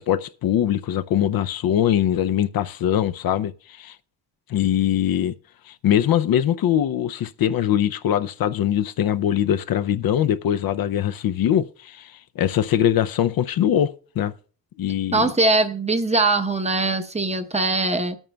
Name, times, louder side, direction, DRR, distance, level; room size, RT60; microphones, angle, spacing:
voice 1, 0.0-4.0 4.5-5.3 5.7-14.3 14.8-15.3, left 10 dB, 60° left, 0.5 m, -22 dB
voice 2, 15.1-18.2, right 2 dB, 15° right, 0.8 m, -21 dB
20.0 x 8.9 x 2.2 m
cardioid pair, 115°, 39 cm